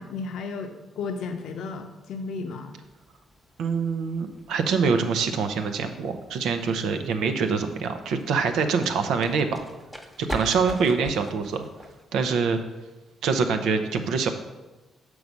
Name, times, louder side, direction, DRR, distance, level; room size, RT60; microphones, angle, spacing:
voice 1, 0.0-2.7, left 4 dB, 75° left, 5 dB, 0.6 m, -34 dB
sound 1, 2.8-12.0, equal, ahead, 1.0 m, -43 dB
voice 2, 3.6-9.6 10.3-11.6 12.1-12.6 13.2-14.3, right 5 dB, 80° right, 7 dB, 0.7 m, -25 dB
7.0 x 4.7 x 5.2 m, 1.1 s
cardioid pair, 90°, 0 cm